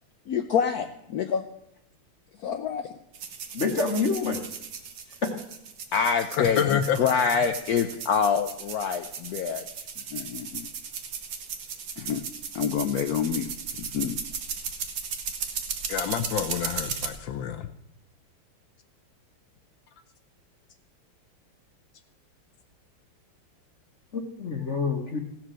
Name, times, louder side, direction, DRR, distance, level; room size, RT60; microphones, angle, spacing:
voice 1, 0.3-1.4 2.4-2.9 5.9-9.6 10.1-10.7 12.0-12.2 12.5-13.5 13.8-14.2, left 7 dB, 85° left, 7 dB, 0.8 m, -26 dB
sound 1, 3.1-17.1, right 6 dB, 70° right, 2.0 m, -36 dB
voice 2, 3.5-4.4 24.1-25.2, left 4 dB, 45° left, 3 dB, 1.1 m, -27 dB
voice 3, 6.3-7.0 15.9-17.7, left 9 dB, 70° left, 8 dB, 1.3 m, -27 dB
16.5 x 6.1 x 7.5 m, 0.80 s
omnidirectional pair, 2.4 m